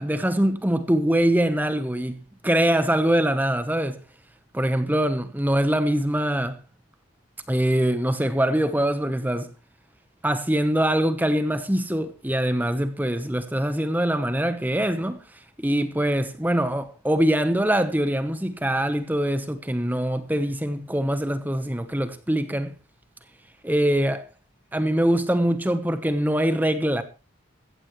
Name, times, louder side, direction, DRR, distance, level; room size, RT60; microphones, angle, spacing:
voice 1, 0.0-4.0 4.5-6.5 7.5-9.5 10.2-15.2 15.6-22.7 23.6-24.2 24.7-27.0, right 1 dB, 10° right, 0.9 m, -23 dB
15.5 x 14.5 x 3.1 m
head